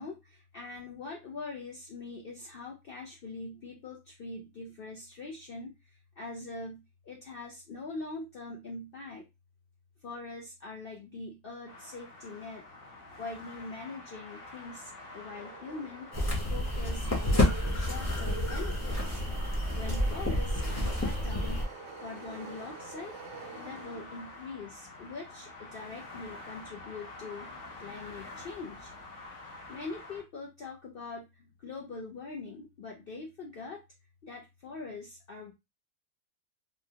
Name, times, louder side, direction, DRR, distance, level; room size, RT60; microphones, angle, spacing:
voice 1, 0.0-9.2 10.0-12.6 13.2-16.1 16.5-19.2 19.7-21.7 22.0-23.2 23.6-27.5 27.8-28.9 29.7-33.8 34.2-35.5, left 3 dB, 70° left, -1 dB, 0.5 m, -43 dB
sound 1, 11.7-30.2, left 2 dB, 50° left, 0.9 m, -48 dB
sound 2, 15.3-24.4, right 5 dB, 65° right, 0.8 m, -46 dB
sound 3, 16.1-21.6, left 1 dB, 20° left, 0.5 m, -29 dB
3.6 x 2.1 x 2.7 m, 0.23 s
omnidirectional pair, 1.5 m